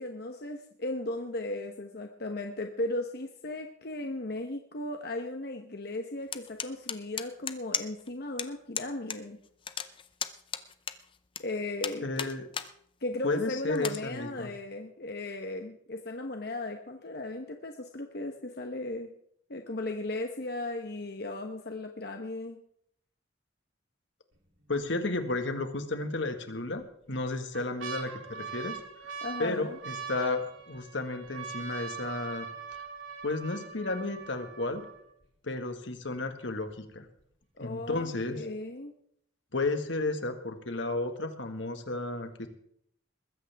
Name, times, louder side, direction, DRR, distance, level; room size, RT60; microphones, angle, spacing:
voice 1, 0.0-9.4 11.4-12.0 13.0-19.1 19.5-22.6 29.2-29.8 37.6-38.9, left 2 dB, 55° left, 4 dB, 1.0 m, -36 dB
sound 1, 6.3-8.1 8.4-8.5 8.7-9.2 9.4-11.4 11.8-12.7 13.1-13.2 13.7-14.0, left 8 dB, 25° left, 0.6 m, -35 dB
voice 2, 12.0-12.5 13.2-14.5 24.7-28.8 29.4-32.5 33.2-34.9 35.4-37.1 37.6-38.4 39.5-42.5, left 2 dB, 70° left, 7 dB, 1.7 m, -33 dB
sound 2, 24.3-24.8 25.3-25.4 26.3-26.8 27.3-35.2 36.0-36.1 36.2-36.7 37.2-37.3, right 6 dB, 85° right, 3.0 m, -42 dB
21.0 x 14.5 x 3.5 m, 0.68 s
head